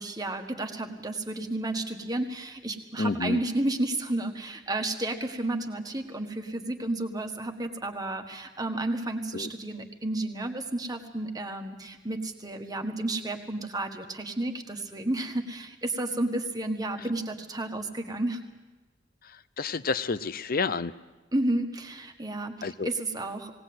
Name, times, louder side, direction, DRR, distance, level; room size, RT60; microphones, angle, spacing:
voice 1, 0.0-18.4 21.3-23.5, right 2 dB, 20° right, 4 dB, 1.6 m, -32 dB
voice 2, 3.0-3.4 9.3-9.5 19.6-20.9 22.6-22.9, left 4 dB, 50° left, 15 dB, 0.7 m, -29 dB
19.0 x 18.5 x 7.8 m, 1.2 s
head